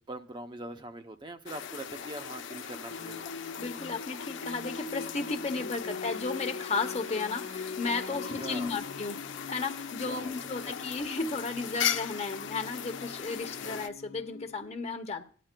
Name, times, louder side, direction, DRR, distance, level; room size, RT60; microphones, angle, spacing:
voice 1, 0.0-3.4 8.1-8.8 10.1-10.4 13.0-13.7, right 2 dB, 25° right, 6 dB, 0.5 m, -43 dB
sound 1, 1.5-13.9, left 8 dB, 70° left, 0.6 m, -39 dB
Singing, 2.9-14.6, left 5 dB, 90° left, 1.0 m, -43 dB
voice 2, 3.6-15.2, left 3 dB, 30° left, 6 dB, 0.8 m, -34 dB
18.0 x 10.0 x 2.2 m, 0.43 s
head